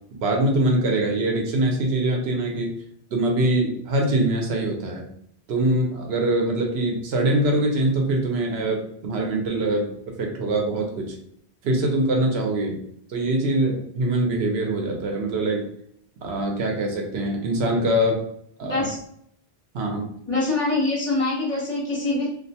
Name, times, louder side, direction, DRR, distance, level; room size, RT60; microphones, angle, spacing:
voice 1, 0.2-2.7 3.1-5.1 5.5-11.2 11.6-12.8 13.1-15.6 16.2-18.2 18.6-18.8 19.7-20.1, right 1 dB, 80° right, 1 dB, 0.9 m, -23 dB
voice 2, 20.3-22.3, left 2 dB, 35° left, -6 dB, 1.1 m, -24 dB
2.4 x 2.1 x 2.7 m, 0.70 s
omnidirectional pair, 1.0 m